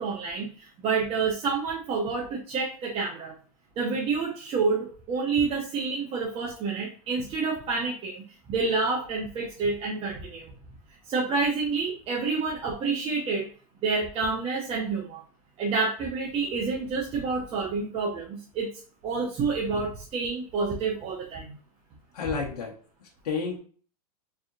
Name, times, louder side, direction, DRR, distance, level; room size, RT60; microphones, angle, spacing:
voice 1, 0.0-3.3 3.8-8.2 8.5-10.5 11.1-13.5 13.8-15.2 15.6-18.7 19.0-21.5, right 4 dB, 30° right, -3 dB, 1.0 m, -28 dB
voice 2, 22.1-22.7 23.0-23.6, left 5 dB, 80° left, 0 dB, 1.0 m, -31 dB
3.8 x 3.6 x 2.4 m, 0.41 s
hypercardioid pair, 125°, 19 cm